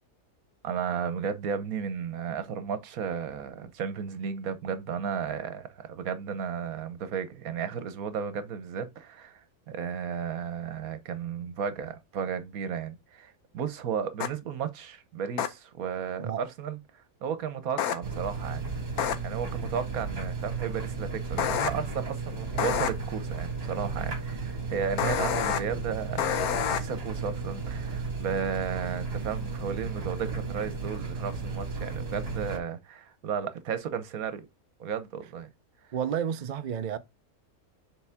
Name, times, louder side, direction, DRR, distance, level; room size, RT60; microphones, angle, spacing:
voice 1, 0.6-16.8 17.2-18.6 19.2-34.5 34.8-35.5, right 7 dB, 70° right, 1.3 m, -34 dB
sound 1, 14.2-14.3 15.4-15.5 17.8-18.0 19.0-19.1 21.4-21.7 22.6-22.9 25.0-25.6 26.2-26.8, left 9 dB, 75° left, 1.2 m, -27 dB
sound 2, 18.0-32.6, right 4 dB, 40° right, 1.8 m, -34 dB
voice 2, 35.9-37.0, right 8 dB, 90° right, 0.4 m, -31 dB
7.0 x 4.1 x 3.5 m
omnidirectional pair, 1.6 m